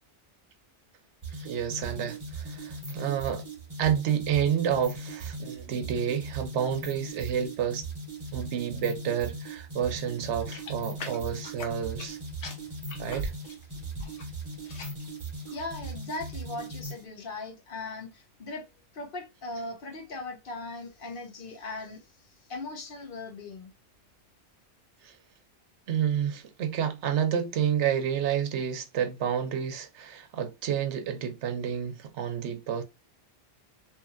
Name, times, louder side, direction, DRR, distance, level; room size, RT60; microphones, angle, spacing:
sound 1, 1.2-17.1, right 2 dB, 30° right, 1.0 m, -39 dB
voice 1, 1.4-3.4 3.8-7.9 8.3-12.2 13.0-13.3 25.0-25.1 25.9-32.8, right 8 dB, 75° right, 0.9 m, -29 dB
sound 2, 10.5-12.2 12.4-14.3 14.6-15.1 15.5-15.8, equal, 75° left, 1.1 m, -40 dB
voice 2, 15.5-18.7 18.9-22.1 22.5-23.7, left 3 dB, 55° left, 0.9 m, -39 dB
2.8 x 2.7 x 2.4 m
omnidirectional pair, 1.2 m